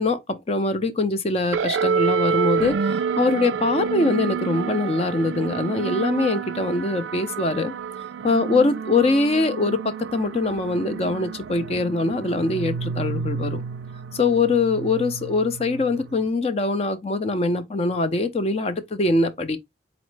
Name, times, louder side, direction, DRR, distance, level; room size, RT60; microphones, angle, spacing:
voice 1, 0.0-7.7 8.2-13.6 14.1-19.6, left 3 dB, 35° left, 0.4 m, -23 dB
sound 1, 1.5-16.3, right 6 dB, 90° right, 0.4 m, -29 dB
4.0 x 3.1 x 3.2 m
head